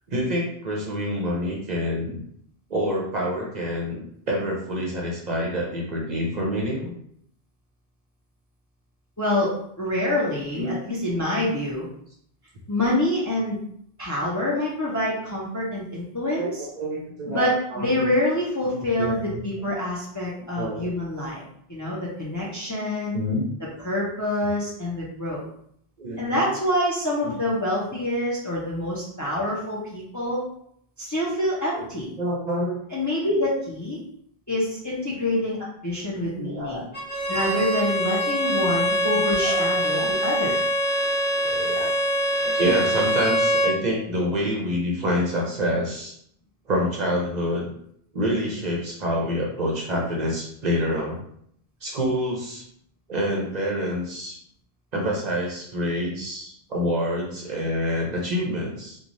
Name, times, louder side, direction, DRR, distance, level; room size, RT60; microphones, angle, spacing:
voice 1, 0.1-2.2 2.7-4.0 4.3-6.9 10.6-10.8 14.2-14.6 16.3-18.1 18.7-19.7 20.6-20.9 23.1-23.4 26.0-26.4 27.2-27.3 27.9-28.0 32.2-32.8 35.1-35.2 36.3-36.9 38.8-38.9 39.4-39.6 39.9-40.1 41.4-42.0 42.4-46.1 46.7-47.7 48.1-51.2 51.8-52.6 53.1-54.4 54.9-59.0, equal, 50° right, -2 dB, 0.7 m, -27 dB
voice 2, 9.2-9.5 9.8-11.9 12.7-13.6 14.0-16.7 17.3-21.4 21.7-23.2 23.8-25.4 26.2-30.4 31.0-32.1 32.9-34.0 34.5-35.6 35.8-36.8 37.3-40.5, left 1 dB, 25° left, -5 dB, 0.4 m, -26 dB
Bowed string instrument, 36.9-43.8, equal, 55° left, 1.1 m, -24 dB
3.1 x 2.2 x 2.5 m, 0.68 s
omnidirectional pair, 1.0 m